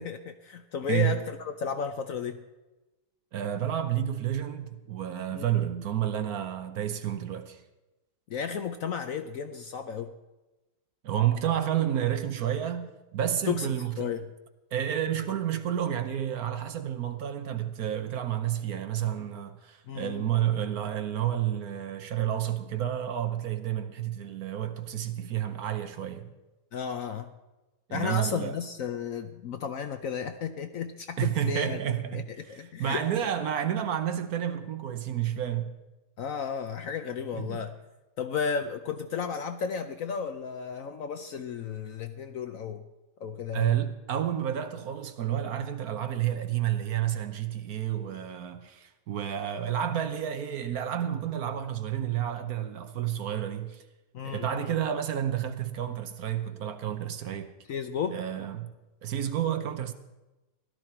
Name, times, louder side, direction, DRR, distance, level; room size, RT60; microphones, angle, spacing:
voice 1, 0.0-2.4 5.3-5.4 8.3-10.1 13.5-14.3 19.9-20.2 26.7-27.3 27.9-31.8 32.1-33.0 36.2-37.7 38.2-42.9 43.2-43.7 54.1-54.8 57.7-58.2, left 6 dB, 65° left, 0.9 m, -33 dB
voice 2, 3.3-7.6 11.0-14.1 14.7-26.3 27.9-28.6 31.2-35.7 37.3-37.6 43.5-53.8 54.2-57.5 58.1-58.7 59.0-59.9, right 10 dB, 60° right, 1.2 m, -30 dB
16.5 x 12.5 x 4.4 m
omnidirectional pair, 1.9 m